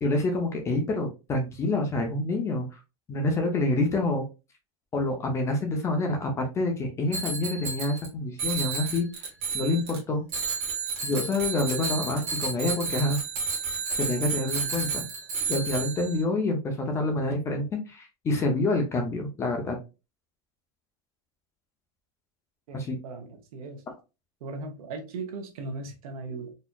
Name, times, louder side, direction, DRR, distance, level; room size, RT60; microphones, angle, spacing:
voice 1, 0.0-2.8 3.1-4.2 4.9-9.1 9.5-10.2 11.0-13.2 14.0-15.0 15.5-19.8 22.7-23.0, left 2 dB, 15° left, 0.5 m, -27 dB
Bicycle bell, 7.1-8.1 8.4-10.0 10.3-16.2, right 5 dB, 40° right, 1.6 m, -31 dB
voice 2, 22.7-23.8 24.4-26.5, right 3 dB, 75° right, 1.2 m, -38 dB
4.1 x 2.8 x 2.2 m
supercardioid pair, 170°, 18 cm